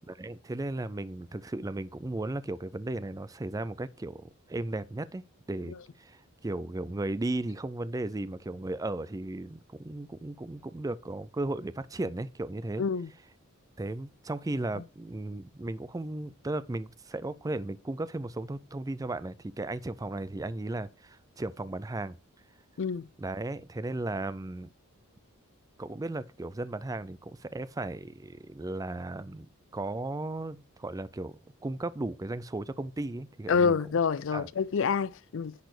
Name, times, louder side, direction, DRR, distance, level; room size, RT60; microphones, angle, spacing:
voice 1, 0.1-5.2 5.5-12.8 13.8-22.2 23.2-24.7 25.8-33.8 34.3-34.5, right 2 dB, 15° right, 0.4 m, -35 dB
voice 2, 12.8-13.1 22.8-23.0 33.5-35.5, left 5 dB, 60° left, 0.4 m, -27 dB
10.5 x 4.2 x 6.6 m
head